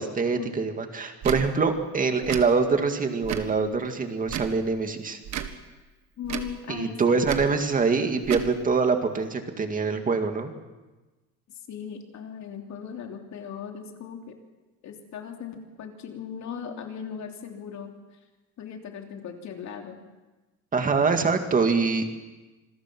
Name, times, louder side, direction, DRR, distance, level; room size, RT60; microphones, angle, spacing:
voice 1, 0.0-5.2 6.7-10.5 20.7-22.1, right 4 dB, 20° right, 6 dB, 2.2 m, -24 dB
Tick / Tick-tock, 1.2-1.4 2.2-2.5 3.2-3.5 4.2-4.6 5.2-5.5 6.2-6.5 7.2-7.5 8.2-8.5, right 9 dB, 45° right, 1.8 m, -32 dB
voice 2, 6.2-7.2 11.7-14.4 14.8-17.9 18.6-20.0 20.7-20.9, left 7 dB, 45° left, 3 dB, 3.2 m, -38 dB
27.0 x 21.5 x 6.1 m, 1.2 s
cardioid pair, 155°, 38 cm